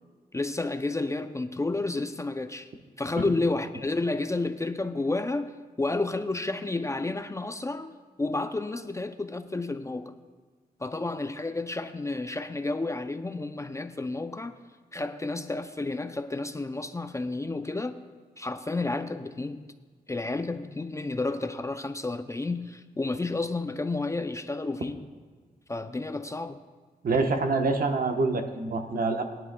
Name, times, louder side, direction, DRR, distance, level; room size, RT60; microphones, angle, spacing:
voice 1, 0.3-2.7 3.0-10.1 10.8-14.6 14.9-18.0 18.4-19.6 20.1-25.1 25.7-26.6, left 2 dB, 20° left, 9 dB, 0.4 m, -31 dB
voice 2, 27.0-29.2, right 3 dB, 65° right, 5 dB, 1.0 m, -26 dB
20.0 x 10.5 x 2.2 m, 1.4 s
wide cardioid pair, 110°, 16 cm